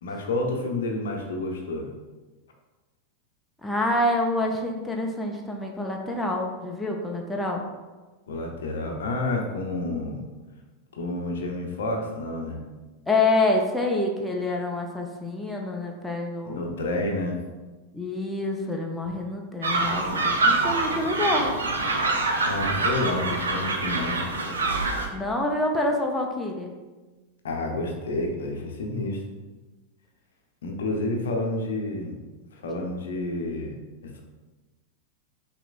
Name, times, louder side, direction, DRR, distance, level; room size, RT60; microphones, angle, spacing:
voice 1, 0.0-1.9 8.3-10.2 10.9-12.6 16.4-17.4 22.4-24.2 27.4-29.2 30.6-32.1 32.5-33.7 34.0-34.2, left 2 dB, 60° left, 2 dB, 0.7 m, -29 dB
voice 2, 3.6-7.6 13.1-16.6 17.9-21.5 25.1-26.7, left 2 dB, 5° left, 0 dB, 0.6 m, -27 dB
sound 1, 19.6-25.1, right 3 dB, 70° right, 0.6 m, -25 dB
5.9 x 3.0 x 2.5 m, 1.2 s
figure-of-eight pair, 90°, 0 cm